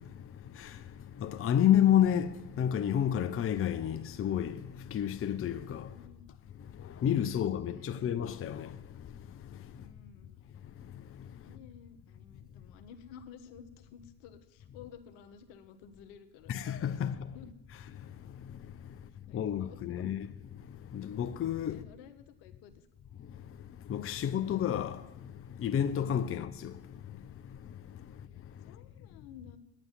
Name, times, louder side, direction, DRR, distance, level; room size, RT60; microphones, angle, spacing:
voice 1, 1.2-2.3 2.6-4.5 4.9-5.8 7.0-8.7 16.5-17.1 19.3-20.3 20.9-21.8 23.9-25.0 25.6-26.7, left 10 dB, 30° left, 0.7 m, -29 dB
voice 2, 5.9-6.3 7.1-8.2 9.7-10.4 11.4-16.5 17.0-17.5 19.3-20.1 21.7-22.9 28.1-28.2 28.6-29.6, left 7 dB, 75° left, 1.2 m, -53 dB
9.3 x 9.1 x 7.4 m
supercardioid pair, 80°, 43 cm